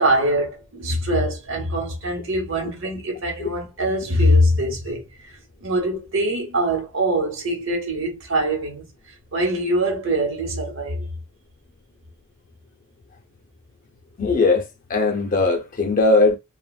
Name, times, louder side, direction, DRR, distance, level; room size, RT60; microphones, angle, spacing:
voice 1, 0.0-5.0 5.6-8.9 9.3-11.1, equal, 65° right, 0.9 m, -23 dB
voice 2, 14.2-14.6 14.9-16.4, left 3 dB, 40° left, 0.5 m, -18 dB
2.9 x 2.2 x 2.3 m
head